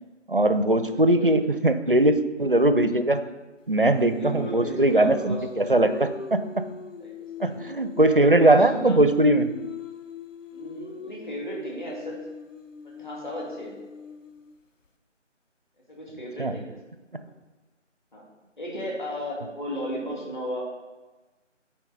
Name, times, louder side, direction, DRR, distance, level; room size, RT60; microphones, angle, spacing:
voice 1, 0.3-3.3 3.7-6.6 7.4-9.5 16.4-16.5, right 1 dB, 50° right, 11 dB, 0.4 m, -20 dB
voice 2, 0.9-1.4 4.1-5.8 7.0-7.1 7.5-7.6 8.4-9.0 10.5-12.2 12.8-13.8 15.9-16.8 18.1-18.2 18.6-20.6, equal, 40° left, -3 dB, 2.3 m, -35 dB
Singing, 4.0-8.3 8.5-14.5, left 2 dB, 85° left, 0.9 m, -40 dB
9.9 x 4.5 x 4.1 m, 1.2 s
figure-of-eight pair, 165°, 37 cm